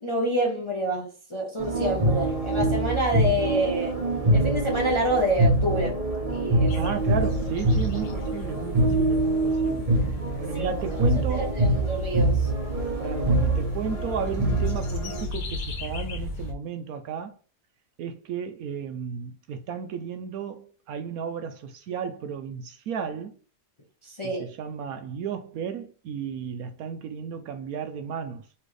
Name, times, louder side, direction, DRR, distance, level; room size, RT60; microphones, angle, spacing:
voice 1, 0.0-4.0 4.3-6.0 6.3-6.7 10.5-10.7 11.3-12.5 24.0-24.4, right 1 dB, 25° left, 0.6 m, -27 dB
sound 1, 1.6-15.2, right 1 dB, 30° right, 0.8 m, -25 dB
sound 2, 6.7-16.5, left 2 dB, 65° left, 1.4 m, -35 dB
voice 2, 6.8-9.9 10.4-11.5 13.0-17.4 18.0-23.4 24.2-28.4, right 7 dB, 70° right, 0.9 m, -34 dB
4.2 x 3.3 x 3.1 m
omnidirectional pair, 1.8 m